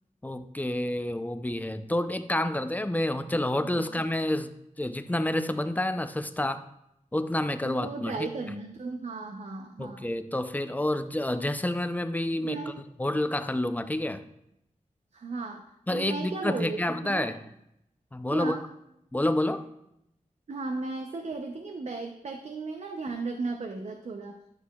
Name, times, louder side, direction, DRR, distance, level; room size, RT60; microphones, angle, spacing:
voice 1, 0.2-4.5 4.8-6.6 7.1-8.3 9.8-12.6 13.0-14.2 15.9-17.4 18.1-18.6 19.1-19.6, left 1 dB, 10° left, 10 dB, 0.4 m, -29 dB
voice 2, 7.6-10.1 12.4-12.8 15.1-15.6 15.9-17.3 18.3-18.7 20.5-24.4, right 3 dB, 55° right, 4 dB, 0.6 m, -35 dB
11.5 x 6.4 x 2.3 m, 0.80 s
wide cardioid pair, 110°, 14 cm